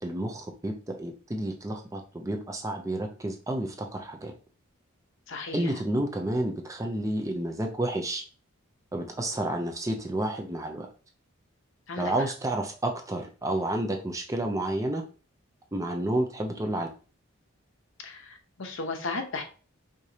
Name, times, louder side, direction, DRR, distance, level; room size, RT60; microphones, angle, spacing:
voice 1, 0.0-4.4 5.5-8.2 8.9-10.9 12.0-15.0 15.7-16.9, right 1 dB, 15° right, 4 dB, 0.5 m, -30 dB
voice 2, 5.3-5.6 11.9-12.1 18.0-19.4, left 3 dB, 65° left, 4 dB, 0.9 m, -35 dB
4.9 x 3.8 x 2.8 m, 0.38 s
head